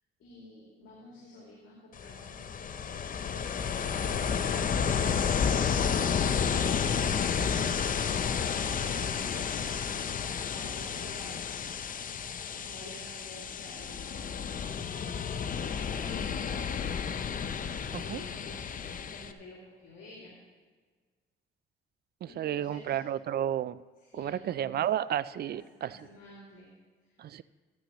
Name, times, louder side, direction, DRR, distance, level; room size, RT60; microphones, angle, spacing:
voice 1, 0.2-6.5 10.5-11.5 12.5-14.6 15.0-17.0 18.0-20.4 22.2-23.1 24.0-24.8 25.3-26.7 27.0-27.4, left 2 dB, 75° left, -4 dB, 2.6 m, -51 dB
Ocean, 1.9-19.3, left 7 dB, 45° left, 0.6 m, -31 dB
voice 2, 7.4-7.8 17.9-18.2 22.2-23.8 24.1-25.9 27.2-27.4, right 11 dB, 55° right, 18 dB, 0.4 m, -32 dB
13.5 x 11.5 x 3.1 m, 1.5 s
cardioid pair, 90°, 20 cm